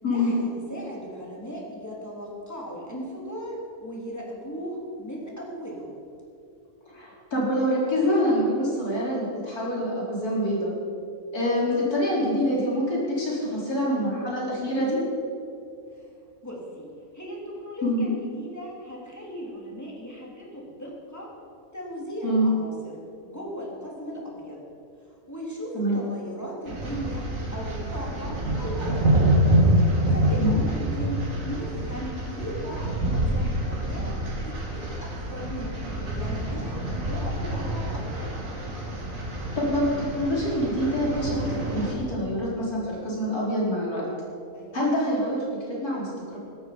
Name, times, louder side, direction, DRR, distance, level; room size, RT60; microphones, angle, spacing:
voice 1, 0.0-5.9 13.4-13.8 15.9-16.1 16.4-21.3 21.7-24.6 25.1-29.0 29.5-38.4 44.5-44.9, equal, 10° left, -3 dB, 3.3 m, -37 dB
voice 2, 6.9-10.7 11.3-15.0 17.8-18.0 22.2-22.5 25.7-26.0 30.4-30.5 39.6-44.0 44.7-46.4, equal, 90° left, -5 dB, 4.9 m, -26 dB
sound 1, 26.7-41.9, right 1 dB, 60° right, 2.8 m, -26 dB
17.0 x 13.5 x 5.3 m, 2.6 s
omnidirectional pair, 1.6 m